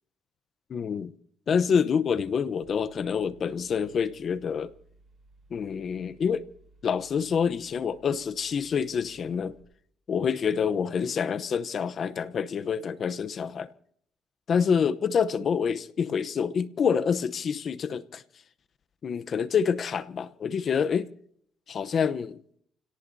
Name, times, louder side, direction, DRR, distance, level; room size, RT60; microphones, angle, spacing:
voice 1, 0.7-1.1 1.5-4.7 5.5-6.4 6.8-9.6 10.1-13.7 14.5-18.2 19.0-21.1 21.7-22.4, left 6 dB, 55° left, 0.8 m, -27 dB
Mechanical fan, 2.6-9.6, right 2 dB, 40° right, 6.9 m, -59 dB
29.5 x 18.0 x 2.8 m
cardioid pair, 90°, 0 cm